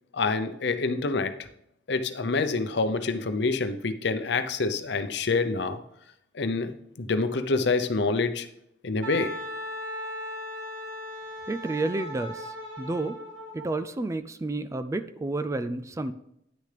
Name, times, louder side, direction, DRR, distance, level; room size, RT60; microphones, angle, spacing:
voice 1, 0.1-1.5 1.9-5.8 6.3-8.5 8.8-9.4, left 3 dB, 60° left, 9 dB, 0.7 m, -27 dB
Wind instrument woodwind instrument, 9.0-13.7, left 1 dB, 75° right, 1.7 m, -37 dB
voice 2, 11.5-13.2 13.5-16.1, right 2 dB, 15° right, 11 dB, 0.3 m, -30 dB
9.9 x 6.6 x 3.4 m, 0.77 s
head